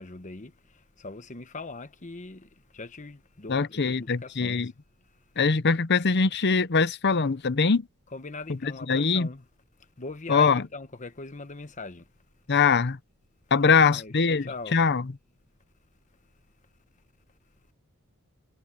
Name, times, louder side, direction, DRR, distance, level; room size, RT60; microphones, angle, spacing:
voice 1, 0.0-4.7 8.1-9.4 10.0-12.1 13.7-14.8, left 3 dB, 35° left, 1.1 m, -41 dB
voice 2, 3.5-4.7 5.4-7.9 8.6-9.3 10.3-10.6 12.5-13.0 13.5-15.0, left 5 dB, 50° left, 0.8 m, -22 dB
head